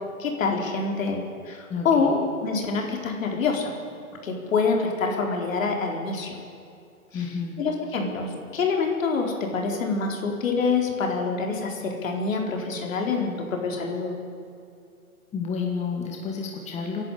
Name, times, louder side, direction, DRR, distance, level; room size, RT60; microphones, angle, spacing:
voice 1, 0.2-3.7 4.2-6.4 7.1-7.2 7.6-14.1, left 4 dB, 60° left, 2 dB, 4.3 m, -26 dB
voice 2, 1.7-2.2 7.1-7.5 15.3-17.0, left 5 dB, 15° left, 0 dB, 2.4 m, -30 dB
27.0 x 11.0 x 9.9 m, 2.5 s
hypercardioid pair, 130°, 44 cm